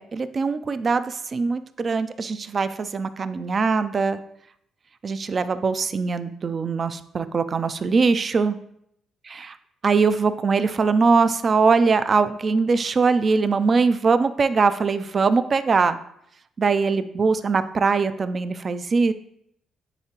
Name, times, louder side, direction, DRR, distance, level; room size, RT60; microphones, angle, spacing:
voice 1, 0.0-4.2 5.0-8.6 9.3-9.5 9.8-16.0 16.6-19.1, right 4 dB, 40° right, 12 dB, 0.4 m, -22 dB
9.8 x 3.7 x 2.9 m, 0.73 s
cardioid pair, 90°, 0 cm